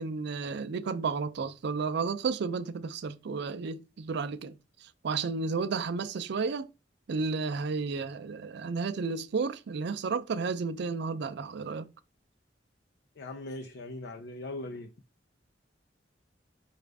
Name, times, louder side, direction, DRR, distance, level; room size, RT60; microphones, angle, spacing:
voice 1, 0.0-6.7 7.1-11.9, right 4 dB, 65° right, 0.4 m, -32 dB
voice 2, 13.2-14.9, left 2 dB, 65° left, 0.5 m, -40 dB
4.9 x 2.4 x 3.3 m
head